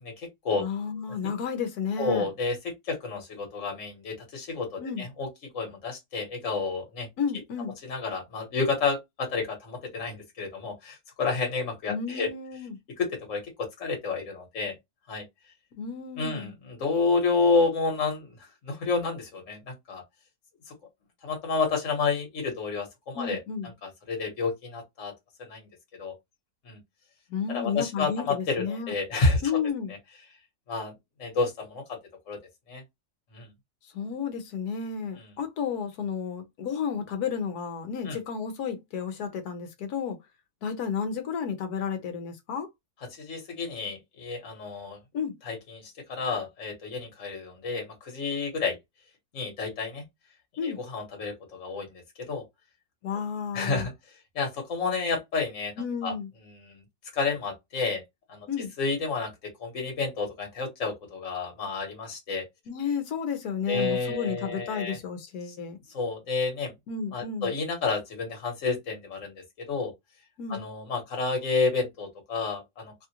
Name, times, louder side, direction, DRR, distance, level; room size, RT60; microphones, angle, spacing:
voice 1, 0.0-0.6 2.0-2.6 2.8-5.3 5.5-7.1 7.9-12.3 13.3-14.7 15.1-15.2 16.2-18.3 18.6-20.0 21.2-23.4 23.8-25.1 25.4-25.7 26.0-26.1 26.6-26.8 27.5-29.6 30.7-30.9 31.2-32.0 32.3-32.4 32.7-32.8 33.3-33.5 38.1-38.2 43.1-45.0 45.4-48.8 49.3-50.0 50.6-52.0 52.3-52.4 53.5-53.9 54.3-55.7 56.0-56.1 56.6-56.8 57.1-58.0 58.3-58.5 58.8-59.3 59.6-62.4 63.7-65.0 65.9-66.7 67.1-69.9 70.5-72.9, left 4 dB, 55° left, 1.6 m, -30 dB
voice 2, 0.6-2.3 4.8-5.1 7.2-7.7 11.9-12.8 15.8-16.5 23.1-23.7 27.3-28.9 29.4-29.9 33.9-40.2 40.6-42.7 45.1-45.3 50.6-50.8 53.0-53.9 55.8-56.3 58.5-58.7 62.7-65.8 66.9-67.5 70.4-70.6, left 6 dB, 80° left, 1.3 m, -32 dB
3.2 x 2.4 x 2.8 m
omnidirectional pair, 1.6 m